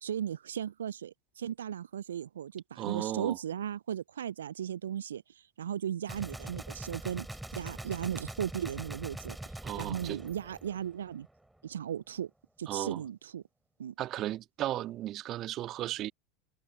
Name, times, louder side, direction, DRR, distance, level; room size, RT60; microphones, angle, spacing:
voice 1, 0.0-5.2 5.6-7.3 7.5-9.4 9.8-11.3 11.6-12.3 12.6-13.4 13.8-13.9, right 9 dB, 70° right, 0.7 m, -36 dB
voice 2, 2.8-3.4 9.6-10.2 12.7-13.0 14.0-16.1, right 13 dB, 40° right, 2.0 m, -35 dB
Gunshot gunfire, 6.1-11.3, right 1 dB, 5° right, 5.3 m, -43 dB
figure-of-eight pair, 80°, 0 cm